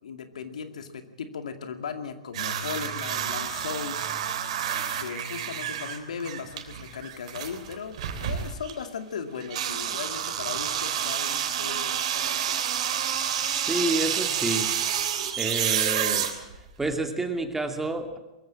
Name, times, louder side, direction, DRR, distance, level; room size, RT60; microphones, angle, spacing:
voice 1, 0.0-4.1 5.0-12.6, left 6 dB, 80° left, 7 dB, 2.4 m, -37 dB
sound 1, 2.3-8.8 9.4-16.9, right 9 dB, 65° right, 3.4 m, -29 dB
voice 2, 13.5-14.7 15.4-16.3 16.8-18.2, right 2 dB, 10° right, 5 dB, 2.6 m, -29 dB
22.5 x 15.0 x 8.8 m, 0.99 s
hypercardioid pair, 120°, 4 cm